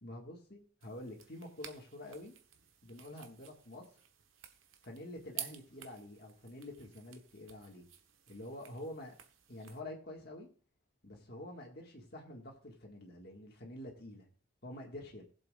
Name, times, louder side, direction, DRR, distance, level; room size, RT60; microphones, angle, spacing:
voice 1, 0.0-2.3 2.8-3.9 4.8-7.9 8.3-9.2 9.5-10.5 11.0-14.3 14.6-15.2, left 1 dB, 50° left, 0 dB, 1.9 m, -47 dB
sound 1, 0.8-9.8, right 10 dB, 85° right, 1.2 m, -52 dB
19.5 x 7.6 x 2.5 m, 0.43 s
head